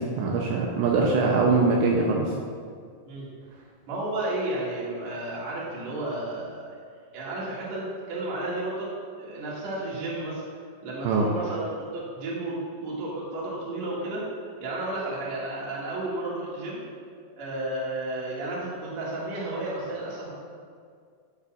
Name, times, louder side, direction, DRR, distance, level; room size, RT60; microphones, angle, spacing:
voice 1, 0.2-2.3 11.0-11.3, right 4 dB, 80° right, -1 dB, 2.9 m, -22 dB
voice 2, 3.9-6.8 7.1-8.9 9.2-10.4 10.8-14.2 14.6-16.8 17.4-20.3, right 2 dB, 50° right, -6 dB, 2.6 m, -32 dB
15.0 x 6.9 x 2.5 m, 2.1 s
omnidirectional pair, 5.5 m